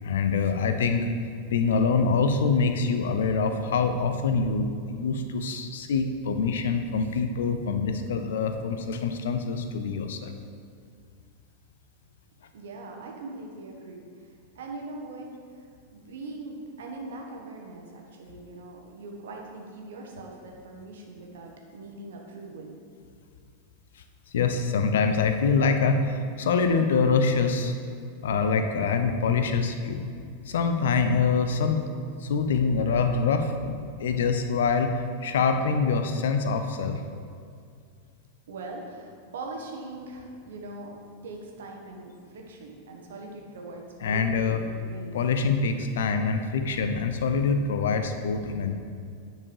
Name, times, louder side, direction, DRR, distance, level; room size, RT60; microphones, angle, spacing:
voice 1, 0.0-1.1 1.5-10.3 24.3-27.7 28.2-30.0 30.5-31.8 32.2-37.0 44.0-44.6 45.1-48.8, left 5 dB, 60° left, 7 dB, 0.6 m, -25 dB
voice 2, 12.5-22.7 38.5-41.0 41.2-45.2, right 2 dB, 60° right, 1 dB, 1.3 m, -41 dB
9.6 x 4.7 x 4.8 m, 2.3 s
figure-of-eight pair, 90°, 0 cm